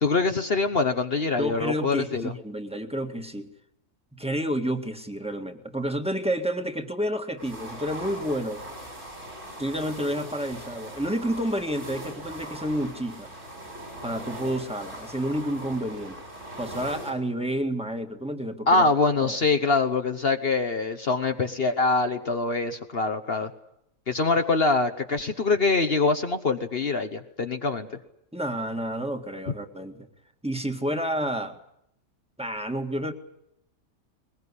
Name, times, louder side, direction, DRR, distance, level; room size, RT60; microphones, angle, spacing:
voice 1, 0.0-2.3 18.7-23.5 24.1-27.9, left 3 dB, 50° left, 7 dB, 1.3 m, -24 dB
voice 2, 1.4-3.5 4.1-8.6 9.6-13.3 14.0-16.2 16.6-18.8 19.2-19.4 28.3-30.1 30.4-31.6 32.4-33.1, equal, 5° right, 5 dB, 1.9 m, -30 dB
sound 1, 7.4-17.1, right 1 dB, 65° right, 8.0 m, -40 dB
21.5 x 21.5 x 9.9 m, 0.77 s
omnidirectional pair, 1.4 m